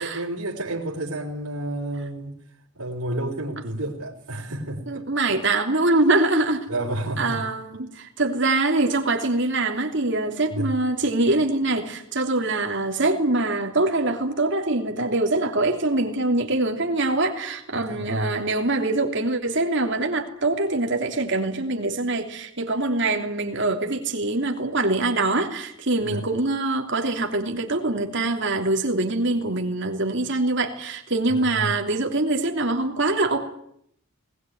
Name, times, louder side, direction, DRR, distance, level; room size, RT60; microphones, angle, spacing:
voice 1, 0.0-2.4 2.8-5.1 6.7-7.4 10.5-10.7 17.7-18.4 26.1-26.2 31.4-31.7, right 1 dB, 85° right, 3.8 m, -30 dB
voice 2, 4.9-6.7 7.2-33.4, right 2 dB, 55° right, 3.1 m, -24 dB
20.0 x 19.5 x 9.4 m
head